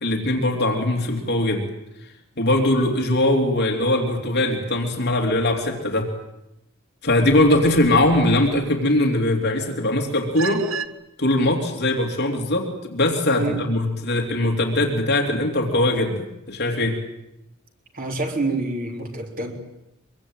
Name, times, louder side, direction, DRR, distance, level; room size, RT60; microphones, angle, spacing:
voice 1, 0.0-1.7 2.4-6.1 7.0-10.6 11.2-17.0, left 1 dB, 55° left, 2 dB, 3.2 m, -21 dB
sound 1, 7.1-9.0 10.3-10.9, right 5 dB, 75° right, 1.6 m, -34 dB
voice 2, 17.9-19.5, right 2 dB, 45° right, 2 dB, 3.7 m, -27 dB
25.0 x 23.0 x 9.2 m, 0.88 s
head